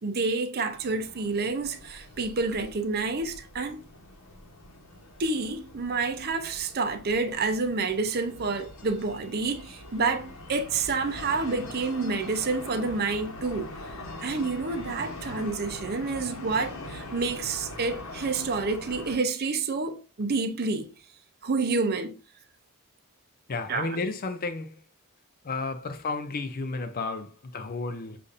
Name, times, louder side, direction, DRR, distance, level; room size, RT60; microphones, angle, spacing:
voice 1, 0.0-3.8 5.2-13.7 14.2-20.9 21.4-22.2 23.7-24.0, right 3 dB, 45° right, 0.6 m, -29 dB
sound 1, 0.7-19.2, left 1 dB, 70° left, 1.0 m, -43 dB
voice 2, 23.5-24.7 25.4-28.2, left 3 dB, 40° left, 0.5 m, -32 dB
6.8 x 2.6 x 2.5 m
head